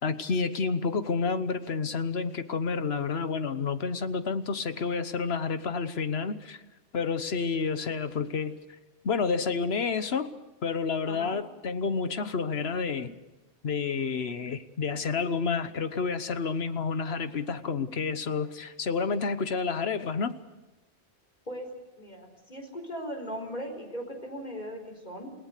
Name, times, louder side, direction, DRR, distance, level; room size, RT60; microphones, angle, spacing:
voice 1, 0.0-6.6 6.9-8.6 9.0-10.3 10.6-13.1 13.6-20.4, left 5 dB, 70° left, 11 dB, 1.3 m, -29 dB
voice 2, 11.1-11.4 21.5-21.7 22.0-25.3, equal, 45° left, 3 dB, 4.7 m, -38 dB
29.0 x 18.0 x 6.7 m, 1.1 s
omnidirectional pair, 1.1 m